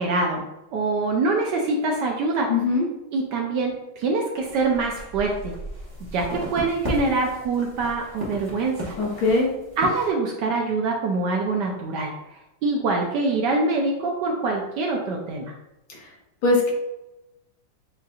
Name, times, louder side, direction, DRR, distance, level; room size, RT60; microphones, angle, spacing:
voice 1, 0.0-2.5 3.1-5.5 6.1-8.9 9.8-12.1 12.6-15.5, right 3 dB, 70° right, 0 dB, 1.1 m, -24 dB
voice 2, 2.5-2.8 9.0-9.5 16.4-16.7, left 3 dB, 70° left, -2 dB, 1.8 m, -20 dB
sound 1, 4.4-10.1, equal, 20° right, 0.6 m, -35 dB
7.6 x 2.8 x 2.3 m, 0.92 s
omnidirectional pair, 2.2 m